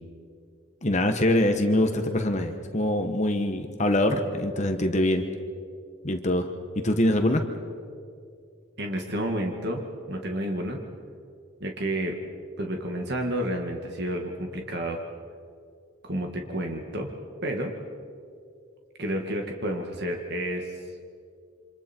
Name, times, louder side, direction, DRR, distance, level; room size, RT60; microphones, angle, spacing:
voice 1, 0.8-5.3 6.0-6.5 6.8-7.4, left 1 dB, 35° left, 6 dB, 1.2 m, -24 dB
voice 2, 8.8-10.8 11.6-12.2 12.6-15.0 16.0-17.1 17.4-17.7 19.0-20.8, right 1 dB, 55° right, 2 dB, 2.0 m, -30 dB
28.0 x 26.0 x 4.5 m, 2.3 s
head